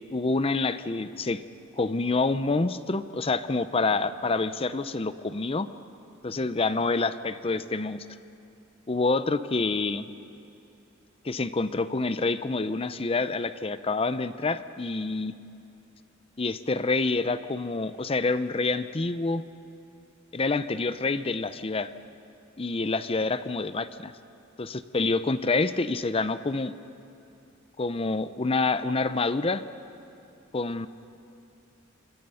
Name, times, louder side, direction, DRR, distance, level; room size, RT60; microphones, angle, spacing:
voice 1, 0.1-1.4 1.8-5.7 6.2-8.0 8.9-10.1 11.2-15.3 16.4-19.4 20.3-21.9 22.6-24.1 24.6-26.7 27.8-29.6 30.5-30.9, left 3 dB, 30° left, 13 dB, 0.6 m, -27 dB
26.0 x 26.0 x 5.6 m, 2.7 s
head